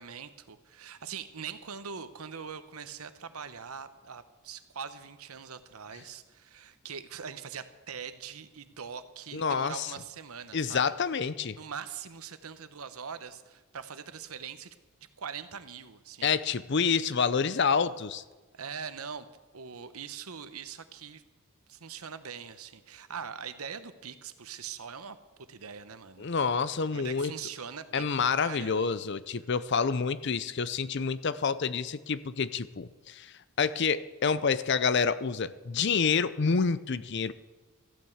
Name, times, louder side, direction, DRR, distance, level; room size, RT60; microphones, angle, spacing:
voice 1, 0.0-10.8 11.6-14.7 15.2-16.3 18.5-19.3 19.5-21.2 21.7-25.2 25.5-26.3 26.9-29.0, right 6 dB, 85° right, 12 dB, 1.0 m, -42 dB
voice 2, 9.3-9.9 10.5-11.6 16.2-18.2 26.2-27.3 27.9-37.3, left 5 dB, 50° left, 16 dB, 0.6 m, -28 dB
14.5 x 9.0 x 7.9 m, 1.2 s
head